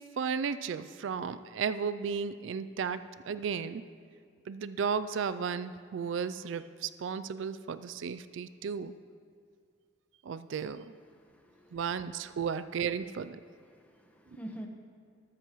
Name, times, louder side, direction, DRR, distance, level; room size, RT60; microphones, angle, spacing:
voice 1, 0.0-3.8 4.5-8.9 10.3-10.8 11.7-13.4, right 6 dB, 75° right, 13 dB, 0.4 m, -34 dB
voice 2, 11.1-11.8 13.7-14.7, right 1 dB, 10° left, 1 dB, 1.1 m, -46 dB
13.5 x 13.0 x 3.1 m, 2.2 s
head